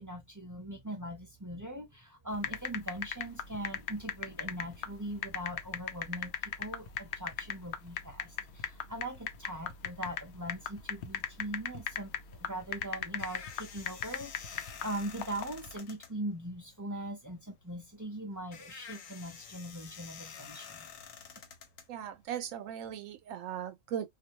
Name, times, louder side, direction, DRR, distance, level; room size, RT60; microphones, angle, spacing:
voice 1, 0.0-14.5 14.8-20.9, right 1 dB, 25° right, 0.4 m, -41 dB
sound 1, 2.3-15.8, left 9 dB, 65° left, 0.7 m, -38 dB
sound 2, 12.7-22.6, left 7 dB, 85° left, 1.1 m, -50 dB
voice 2, 21.9-24.1, right 9 dB, 85° right, 1.0 m, -38 dB
2.5 x 2.1 x 2.8 m
omnidirectional pair, 1.3 m